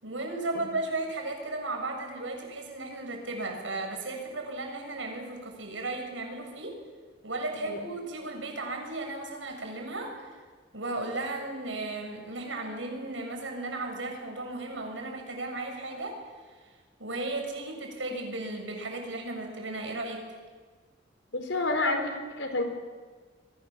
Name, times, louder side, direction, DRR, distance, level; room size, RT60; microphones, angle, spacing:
voice 1, 0.0-6.8 7.2-10.3 10.7-16.2 17.0-20.2, right 2 dB, 90° right, 2 dB, 7.3 m, -35 dB
voice 2, 21.3-22.6, left 2 dB, 85° left, 6 dB, 4.2 m, -29 dB
29.0 x 22.5 x 7.4 m, 1.5 s
head